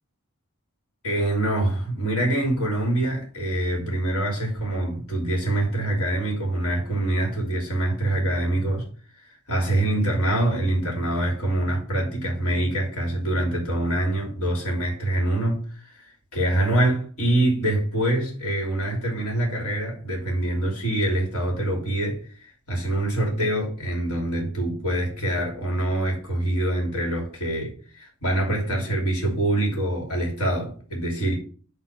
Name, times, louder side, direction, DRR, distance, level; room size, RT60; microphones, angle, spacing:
voice 1, 1.0-8.8 9.2-16.0 16.3-22.2 22.7-31.4, right 1 dB, 80° left, 3.0 m, -25 dB
8.3 x 3.6 x 5.9 m
head